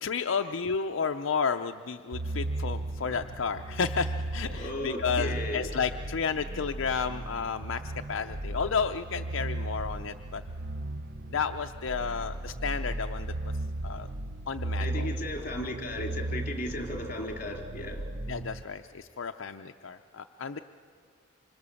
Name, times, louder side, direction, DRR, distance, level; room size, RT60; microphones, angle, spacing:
voice 1, 0.0-7.8 8.1-10.4 11.3-13.3 13.8-14.1 14.5-15.1 18.3-20.6, left 5 dB, 75° left, 5 dB, 0.6 m, -32 dB
sound 1, 2.1-18.6, right 2 dB, 50° right, 0.7 m, -36 dB
voice 2, 4.5-5.7 14.8-18.1, left 1 dB, 40° left, 2 dB, 3.4 m, -35 dB
26.0 x 25.5 x 7.0 m, 2.1 s
head